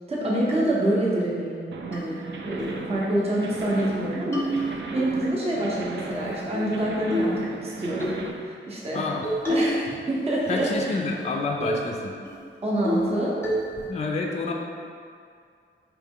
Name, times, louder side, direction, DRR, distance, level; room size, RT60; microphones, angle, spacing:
voice 1, 0.1-8.1 8.4-9.1 9.4-11.0 12.6-13.4, right 1 dB, 30° right, -5 dB, 0.7 m, -27 dB
sound 1, 1.7-8.3, right 4 dB, 65° right, 0.4 m, -37 dB
sound 2, 1.9-2.0 2.6-2.8 3.2-3.3 3.6-4.0 4.3-5.1 6.1-6.7 7.1-7.4 8.0-8.2 9.2-9.8 10.1-10.8 11.2-11.3 11.6-11.8 12.2-12.3 12.8-13.2 13.4-13.9, equal, 10° left, 0.8 m, -28 dB
voice 2, 8.9-9.3 10.5-12.1 13.9-14.5, left 3 dB, 35° left, 1 dB, 0.4 m, -28 dB
4.6 x 3.0 x 3.5 m, 2.3 s
wide cardioid pair, 160°, 21 cm